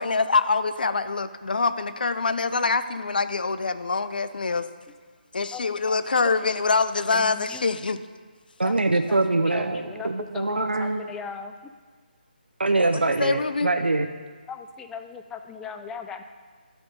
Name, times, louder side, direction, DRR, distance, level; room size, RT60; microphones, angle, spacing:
voice 1, 0.0-4.7 5.3-8.0 13.2-13.7, left 4 dB, 60° left, 13 dB, 0.6 m, -25 dB
voice 2, 7.1-7.6 8.6-8.7 9.1-11.7 14.5-16.2, left 6 dB, 5° left, 7 dB, 0.3 m, -38 dB
voice 3, 8.6-11.1 12.6-14.1, right 2 dB, 85° right, 7 dB, 0.6 m, -24 dB
12.0 x 5.4 x 6.4 m, 1.5 s
figure-of-eight pair, 155°, 5 cm